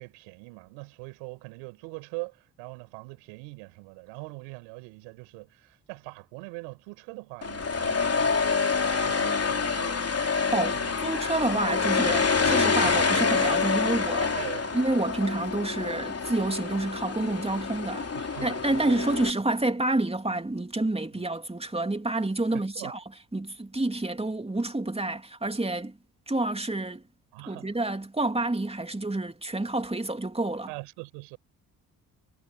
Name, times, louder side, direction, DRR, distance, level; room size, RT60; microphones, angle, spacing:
voice 1, 0.0-10.0 10.7-10.9 11.5-11.6 12.3-13.0 14.3-14.8 18.1-19.0 21.1-21.3 22.5-22.9 27.3-27.7 30.7-31.4, right 30 dB, 85° right, 6.0 m, -42 dB
sound 1, 7.4-19.3, left 5 dB, 35° left, 3.4 m, -27 dB
voice 2, 10.5-14.4 14.7-18.1 18.4-23.0 23.3-26.0 26.3-27.0 27.5-30.7, right 2 dB, 15° right, 2.9 m, -28 dB
hypercardioid pair, 45°, 44 cm